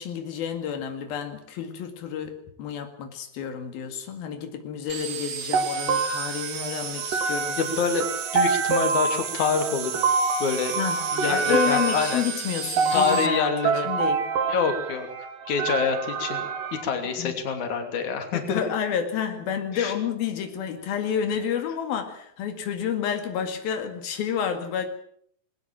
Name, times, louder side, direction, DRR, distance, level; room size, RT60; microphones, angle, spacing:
voice 1, 0.0-7.6 10.8-11.0 11.3-14.3 17.2-17.4 18.3-24.9, left 8 dB, 90° left, 6 dB, 4.0 m, -30 dB
sound 1, 4.9-13.3, right 8 dB, 50° right, 2.4 m, -34 dB
sound 2, 5.5-16.8, right 4 dB, 70° right, 3.9 m, -27 dB
voice 2, 7.6-8.1 8.3-10.0 10.4-10.8 11.1-12.2 12.9-13.9 14.5-15.1 15.5-16.4 16.7-18.6 19.7-19.9, left 5 dB, 55° left, 6 dB, 4.2 m, -26 dB
21.0 x 20.0 x 7.6 m, 0.66 s
omnidirectional pair, 4.1 m